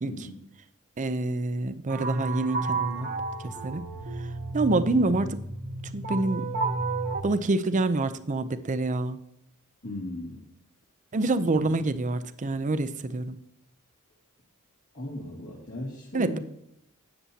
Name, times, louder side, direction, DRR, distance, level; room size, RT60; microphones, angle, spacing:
voice 1, 0.1-0.4 9.8-10.5 11.6-11.7 14.9-16.4, left 1 dB, 65° left, -6 dB, 2.3 m, -37 dB
voice 2, 1.0-3.1 3.4-3.9 4.5-5.4 5.9-6.5 7.2-9.2 11.1-13.4 16.1-16.4, right 2 dB, 35° right, 12 dB, 0.5 m, -27 dB
sound 1, 1.9-7.2, right 3 dB, 50° right, 1.0 m, -31 dB
13.0 x 8.8 x 2.8 m, 0.77 s
head